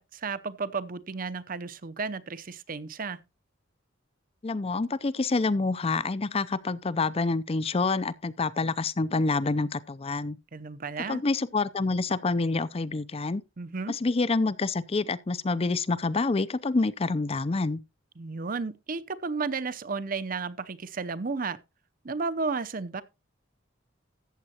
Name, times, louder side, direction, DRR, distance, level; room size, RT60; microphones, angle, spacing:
voice 1, 0.0-3.2 10.5-11.2 13.6-13.9 18.2-21.6 22.0-23.0, right 4 dB, 45° right, 0.7 m, -33 dB
voice 2, 4.4-10.4 11.1-13.4 13.9-17.8, left 3 dB, 30° left, 0.5 m, -27 dB
14.0 x 8.5 x 2.9 m
head